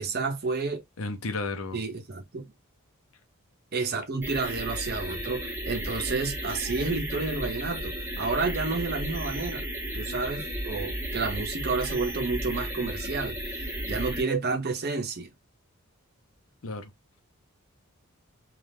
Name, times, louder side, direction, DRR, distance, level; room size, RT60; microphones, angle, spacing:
voice 1, 0.0-0.8 1.7-2.5 3.7-9.7 9.9-15.3, right 4 dB, 45° right, 0.7 m, -30 dB
voice 2, 1.0-1.8 16.6-16.9, left 3 dB, 70° left, 0.7 m, -33 dB
sound 1, 4.2-14.2, right 1 dB, 10° right, 1.0 m, -34 dB
3.4 x 2.4 x 2.6 m
head